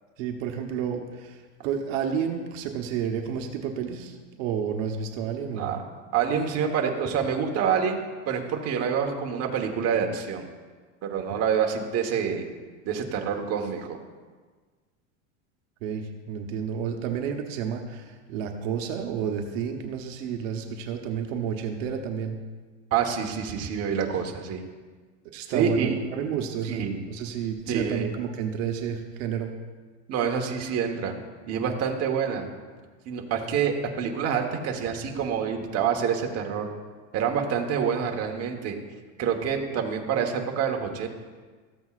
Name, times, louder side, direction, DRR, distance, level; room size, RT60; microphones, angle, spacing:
voice 1, 0.2-5.8 15.8-22.4 25.3-29.5, right 7 dB, 70° right, 4 dB, 1.0 m, -31 dB
voice 2, 5.5-5.8 6.1-8.0 8.3-10.5 11.0-12.4 12.8-14.0 22.9-24.6 25.5-25.9 26.7-27.0 27.7-28.1 30.1-31.1 31.5-32.5 33.0-36.7 37.1-38.7 39.2-41.1, right 7 dB, 40° right, 3 dB, 1.3 m, -27 dB
14.5 x 7.8 x 2.4 m, 1.4 s
supercardioid pair, 135°, 39 cm